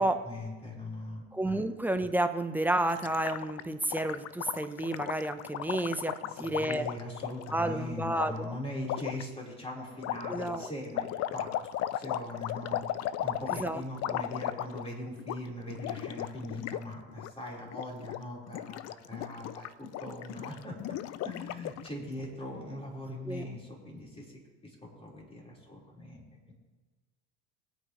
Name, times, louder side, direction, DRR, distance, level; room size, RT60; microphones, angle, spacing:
voice 1, 0.0-1.6 6.3-12.8 13.2-20.7 21.2-24.3 24.6-26.5, left 1 dB, 15° left, -3 dB, 4.4 m, -41 dB
voice 2, 1.3-6.9 7.5-8.5 10.3-10.7 13.6-13.8 14.1-14.2 23.3-23.5, right 1 dB, 5° right, 8 dB, 0.9 m, -31 dB
Gurgling, 2.9-7.5 8.2-8.3 8.8-9.2 10.0-14.9 15.2-15.4 15.7-16.8 17.1-17.3 17.7-18.2 18.5-21.9, left 12 dB, 40° left, 0.5 m, -36 dB
23.0 x 9.2 x 3.2 m, 1.3 s
hypercardioid pair, 100°, 42 cm